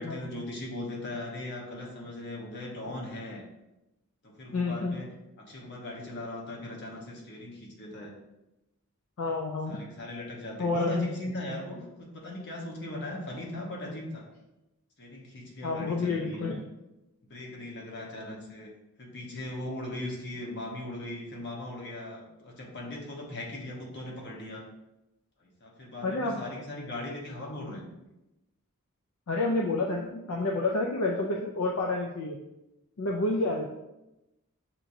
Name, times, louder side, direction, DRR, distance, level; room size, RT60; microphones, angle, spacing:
voice 1, 0.0-3.4 4.2-5.1 5.4-8.1 9.7-14.2 15.0-16.5 17.3-18.7 19.0-24.6 25.4-27.8, left 1 dB, 55° left, -2 dB, 1.1 m, -39 dB
voice 2, 4.5-5.0 9.2-9.8 10.6-11.1 15.6-16.6 26.0-26.4 29.3-32.4 33.0-33.7, left 2 dB, 70° left, 0 dB, 0.5 m, -29 dB
6.3 x 3.0 x 2.6 m, 0.94 s
head